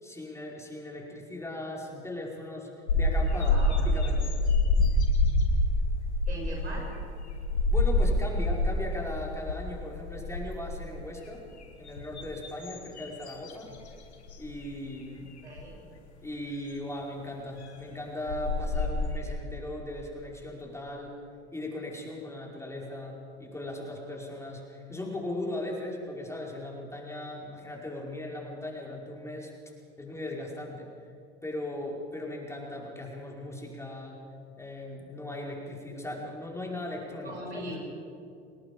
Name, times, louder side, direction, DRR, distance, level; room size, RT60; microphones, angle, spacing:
voice 1, 0.0-2.7 2.9-4.4 7.7-11.4 11.8-13.7 14.4-15.3 16.2-21.2 21.5-29.5 30.0-30.9 31.4-34.2 34.6-37.7, left 1 dB, 10° left, -2 dB, 5.4 m, -38 dB
sound 1, 2.9-8.9 9.3-9.7 10.0-11.0 11.6-13.9 14.3-14.5 15.6-15.7 17.8-17.9 18.3-19.2, left 2 dB, 85° left, 2.5 m, -26 dB
voice 2, 3.4-3.8 6.3-6.9 15.4-15.7 37.2-37.8, right 1 dB, 90° right, -3 dB, 7.2 m, -39 dB
27.5 x 19.5 x 5.3 m, 2.5 s
hypercardioid pair, 75°, 32 cm